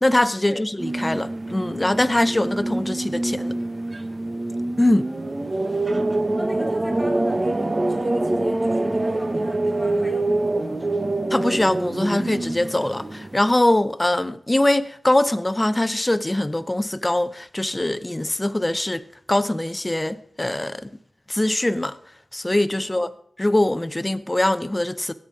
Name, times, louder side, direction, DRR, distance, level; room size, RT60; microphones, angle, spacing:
voice 1, 0.0-3.5 4.8-5.1 11.3-20.9 21.3-22.0 22.3-23.1 23.4-25.1, left 1 dB, 20° left, 0.7 m, -22 dB
sound 1, 0.8-13.4, right 2 dB, 35° right, 0.9 m, -25 dB
voice 2, 5.0-10.8 22.8-23.1, equal, 10° right, 4.6 m, -39 dB
19.5 x 9.3 x 4.9 m
wide cardioid pair, 80°, 0 cm